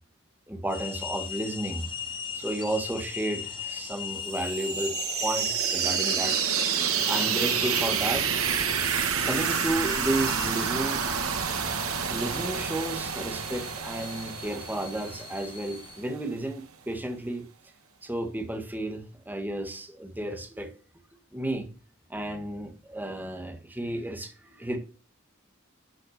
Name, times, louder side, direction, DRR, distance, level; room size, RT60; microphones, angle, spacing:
voice 1, 0.5-1.9 2.3-4.9 5.2-6.4 7.1-8.3 9.3-11.0 12.1-17.5 18.0-20.7 21.3-21.7 22.1-24.8, right 1 dB, 10° right, 5 dB, 1.8 m, -32 dB
sound 1, 0.7-16.0, left 7 dB, 25° left, 2.3 m, -39 dB
sound 2, 4.2-15.9, right 7 dB, 85° right, 2.0 m, -29 dB
12.5 x 6.1 x 6.6 m, 0.37 s
head